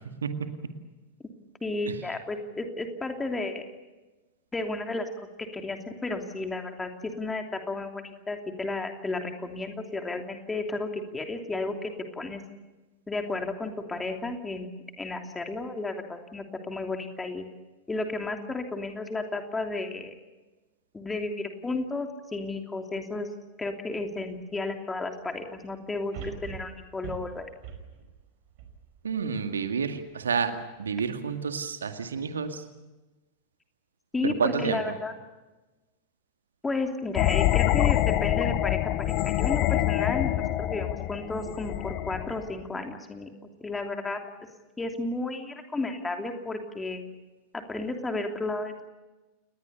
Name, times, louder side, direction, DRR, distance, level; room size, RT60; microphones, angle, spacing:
voice 1, 1.6-3.6 4.5-5.1 5.4-12.4 13.1-14.7 15.0-17.4 17.9-20.2 20.9-23.3 23.6-27.5 34.1-35.1 36.6-43.3 43.6-44.2 44.8-47.0 47.5-48.8, left 2 dB, 10° left, 4 dB, 3.0 m, -33 dB
sound 1, 24.4-24.5 26.1-29.5 30.0-30.1, right 7 dB, 45° right, 5.3 m, -42 dB
voice 2, 29.0-30.5 30.8-32.7 34.2-35.0, right 6 dB, 70° right, 7 dB, 2.1 m, -29 dB
sound 2, 37.2-42.6, left 14 dB, 40° left, 1.1 m, -26 dB
29.5 x 20.5 x 7.0 m, 1.1 s
figure-of-eight pair, 90°, 0 cm